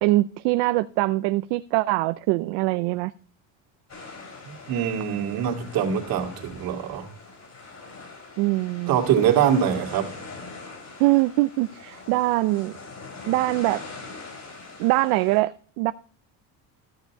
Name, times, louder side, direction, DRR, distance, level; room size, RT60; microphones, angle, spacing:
voice 1, 0.0-3.1 8.4-9.0 11.0-12.7 13.2-13.8 14.8-15.9, right 19 dB, 80° right, 13 dB, 0.5 m, -23 dB
sound 1, 3.9-15.4, left 3 dB, 45° left, 5.3 m, -42 dB
voice 2, 4.4-7.1 8.9-10.1, right 9 dB, 65° right, 3 dB, 2.4 m, -23 dB
14.0 x 6.7 x 4.7 m, 0.43 s
supercardioid pair, 100°, 38 cm